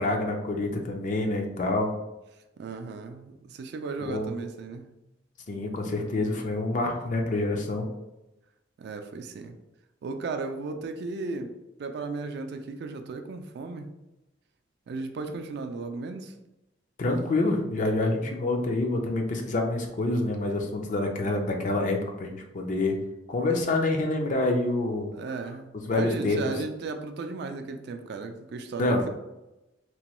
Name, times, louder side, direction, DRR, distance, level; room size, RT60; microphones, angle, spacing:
voice 1, 0.0-1.9 4.0-4.3 5.5-7.9 17.0-23.0 23.3-25.1 25.9-26.4 28.8-29.0, left 2 dB, 40° left, 3 dB, 0.4 m, -27 dB
voice 2, 2.6-4.9 8.8-9.5 10.0-11.5 11.8-13.9 14.9-16.3 25.1-29.1, right 3 dB, 60° right, 6 dB, 0.3 m, -35 dB
3.0 x 2.2 x 2.9 m, 0.97 s
head